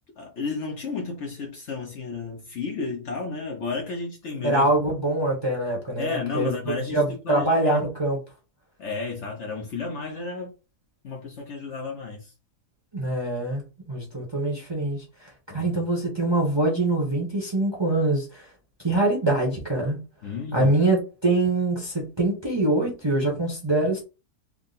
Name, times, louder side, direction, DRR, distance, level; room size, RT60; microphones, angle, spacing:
voice 1, 0.2-4.7 6.0-7.8 8.8-10.5 11.0-12.3 15.5-15.8 20.2-20.7, left 4 dB, 60° left, 0.9 m, -32 dB
voice 2, 4.4-6.5 6.9-8.2 12.9-13.6 13.9-15.0 15.5-18.4 18.8-20.0 20.5-24.0, right 2 dB, 20° right, 0.7 m, -24 dB
3.6 x 2.1 x 3.8 m
omnidirectional pair, 1.6 m